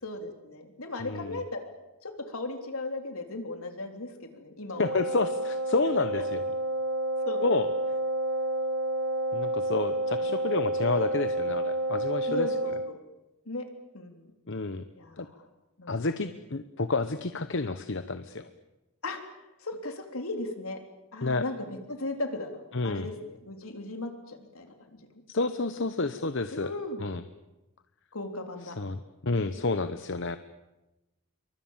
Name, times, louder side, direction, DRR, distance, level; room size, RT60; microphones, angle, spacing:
voice 1, 0.0-1.6 2.0-5.1 6.0-6.2 7.3-7.4 10.2-10.3 12.3-13.0 13.4-13.6 13.9-14.3 15.0-15.3 15.8-15.9 19.0-19.2 19.6-20.8 21.1-22.6 22.8-24.7 26.5-27.0 28.1-28.8, left 2 dB, 75° left, 5 dB, 3.5 m, -36 dB
voice 2, 1.0-1.4 4.8-6.4 7.4-7.7 9.3-12.5 14.5-14.8 15.2-15.3 15.9-18.5 21.2-21.4 22.7-23.1 25.3-26.7 27.0-27.2 28.7-30.4, left 3 dB, 55° left, 10 dB, 1.0 m, -30 dB
Wind instrument woodwind instrument, 4.7-12.9, right 1 dB, 70° right, 1.7 m, -30 dB
28.0 x 24.0 x 7.3 m, 1.0 s
head